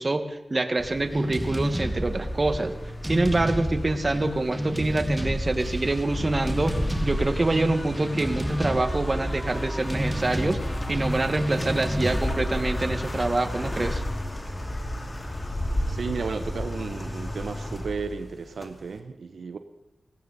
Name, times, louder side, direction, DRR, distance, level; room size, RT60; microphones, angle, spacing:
voice 1, 0.0-2.7 3.0-6.8 7.0-10.6 10.9-14.0, right 2 dB, 40° right, 9 dB, 1.6 m, -26 dB
sound 1, 0.8-19.0, left 1 dB, 30° left, 2.3 m, -33 dB
sound 2, 1.1-13.8, equal, 5° right, 1.6 m, -31 dB
voice 2, 15.9-19.6, right 5 dB, 80° right, 9 dB, 0.8 m, -33 dB
19.0 x 17.0 x 4.1 m, 1.0 s
cardioid pair, 65°, 0 cm